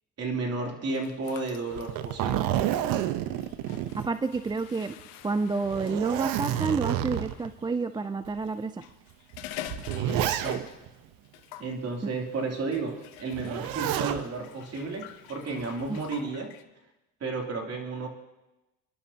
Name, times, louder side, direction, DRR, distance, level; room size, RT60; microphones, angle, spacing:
voice 1, 0.2-2.5 9.9-10.6 11.6-16.5 17.2-18.1, right 3 dB, 45° right, 1 dB, 3.0 m, -33 dB
sound 1, 0.9-7.5 8.6-11.0 11.2-11.8 12.7-16.6, left 13 dB, 85° left, 0.9 m, -47 dB
Zipper (clothing), 1.7-4.6 5.0-5.1 5.6-7.5 8.2-8.4 9.3-10.9 13.3-14.2 15.6-16.1, right 12 dB, 70° right, 0.9 m, -29 dB
voice 2, 3.9-5.0 5.2-8.8 15.9-16.0, right 4 dB, 15° right, 11 dB, 0.4 m, -29 dB
25.0 x 11.5 x 2.8 m, 1.0 s
supercardioid pair, 100°, 36 cm